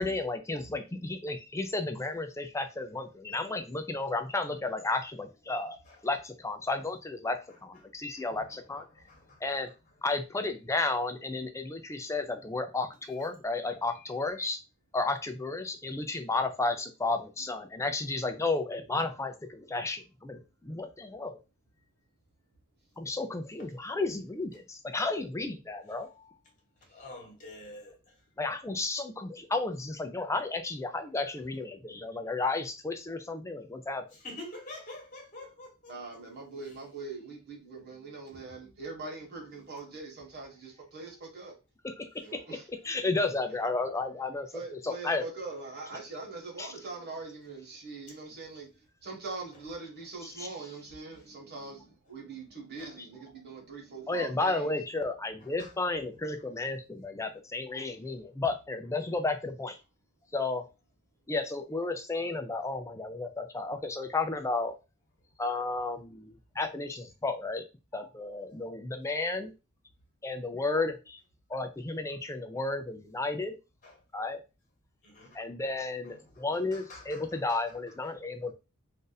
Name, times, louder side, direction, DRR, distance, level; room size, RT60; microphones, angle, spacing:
voice 1, 0.0-5.8 6.0-8.8 9.4-9.7 10.0-14.6 14.9-21.4 23.0-26.2 28.4-34.0 41.8-45.3 46.6-46.7 50.4-50.5 53.0-53.1 54.1-59.8 60.3-60.7 61.3-64.7 65.4-67.6 67.9-69.5 70.2-71.2 71.5-73.6 74.1-74.4 75.3-78.5, left 3 dB, 15° left, 0.4 m, -33 dB
voice 2, 8.2-9.5 26.9-28.2 34.2-36.2 36.7-36.8 38.3-38.4 48.1-48.2 49.5-49.6 51.1-51.2 52.8-53.0 55.4-55.8 57.8-57.9 73.8-74.0 75.0-75.4 76.0-77.8 78.0-78.2, left 1 dB, 35° left, 1.2 m, -48 dB
voice 3, 35.9-41.5 42.2-42.6 43.4-43.5 44.5-48.7 49.0-54.7, right 3 dB, 50° right, 1.3 m, -42 dB
2.6 x 2.5 x 3.9 m
head